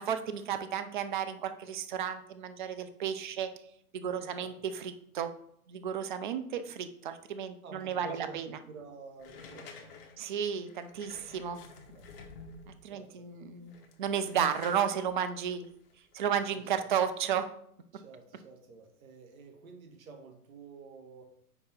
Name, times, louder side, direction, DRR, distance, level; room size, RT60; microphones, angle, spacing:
voice 1, 0.1-3.5 3.9-5.3 5.7-8.5 10.2-11.6 12.8-15.7 16.1-17.5, right 8 dB, 35° right, 10 dB, 0.4 m, -33 dB
voice 2, 4.1-4.6 7.6-10.0 11.9-12.2 12.9-13.3 16.3-16.9 17.9-21.3, right 4 dB, 65° right, 4 dB, 1.4 m, -50 dB
sound 1, 9.2-12.9 13.6-16.5, left 4 dB, 40° left, 0.8 m, -51 dB
4.9 x 4.7 x 4.3 m, 0.68 s
hypercardioid pair, 130°, 45 cm